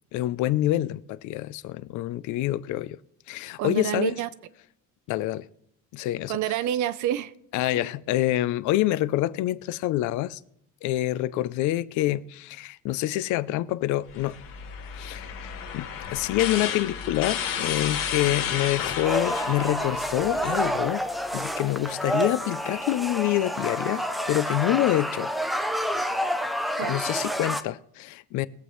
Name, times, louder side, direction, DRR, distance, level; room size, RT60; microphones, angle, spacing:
voice 1, 0.1-3.0 3.3-4.1 5.1-5.5 5.9-6.3 7.5-10.4 10.8-14.4 14.8-21.0 21.3-25.3 26.8-28.5, left 15 dB, 65° left, 0.5 m, -27 dB
voice 2, 3.6-4.3 6.3-7.3 7.8-7.9 26.8-27.0, right 12 dB, 60° right, 0.7 m, -28 dB
sound 1, 14.1-20.6, left 8 dB, 85° left, 2.6 m, -32 dB
sound 2, 14.1-21.8, left 3 dB, 40° left, 1.9 m, -45 dB
sound 3, 19.0-27.6, equal, ahead, 0.4 m, -29 dB
22.0 x 8.2 x 3.1 m
cardioid pair, 175°, 33 cm